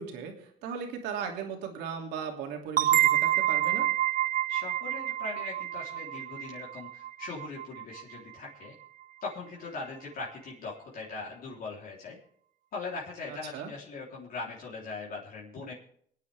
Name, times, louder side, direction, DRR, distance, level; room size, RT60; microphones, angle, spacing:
voice 1, 0.0-3.9 13.3-13.7, right 6 dB, 90° right, 2 dB, 2.9 m, -37 dB
sound 1, 2.8-8.2, right 12 dB, 55° right, 0.4 m, -28 dB
voice 2, 4.5-8.7 9.2-12.2 12.7-15.7, left 3 dB, 60° left, -5 dB, 3.7 m, -40 dB
26.5 x 9.4 x 3.6 m, 0.65 s
cardioid pair, 110°, 17 cm